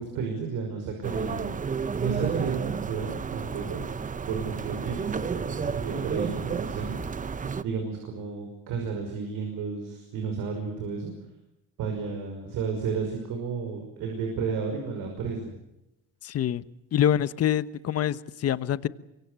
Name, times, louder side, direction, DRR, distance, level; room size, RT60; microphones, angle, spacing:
voice 1, 0.0-1.6 2.0-3.9 4.3-11.1 11.8-15.5, right 5 dB, 80° right, 3 dB, 5.7 m, -32 dB
sound 1, 1.0-7.6, right 6 dB, 25° right, 0.9 m, -31 dB
voice 2, 16.2-16.6 16.9-18.9, left 10 dB, 45° left, 16 dB, 1.1 m, -25 dB
24.0 x 24.0 x 8.1 m, 0.91 s
cardioid pair, 115°, 33 cm